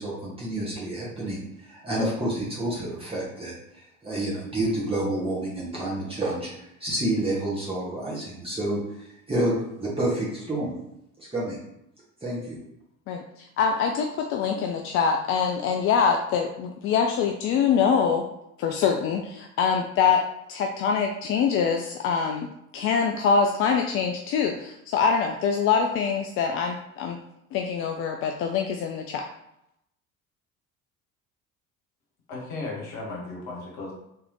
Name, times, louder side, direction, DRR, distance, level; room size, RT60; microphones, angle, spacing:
voice 1, 0.0-10.8 11.2-11.6 12.2-12.6, right 1 dB, 15° right, -7 dB, 1.5 m, -29 dB
voice 2, 13.1-18.2 18.6-20.2 20.5-22.5 22.7-27.2 27.5-29.2, left 6 dB, 35° left, 3 dB, 0.4 m, -24 dB
voice 3, 32.3-33.9, left 3 dB, 60° left, -2 dB, 1.4 m, -35 dB
3.4 x 3.4 x 3.1 m, 0.79 s
figure-of-eight pair, 60°, 41 cm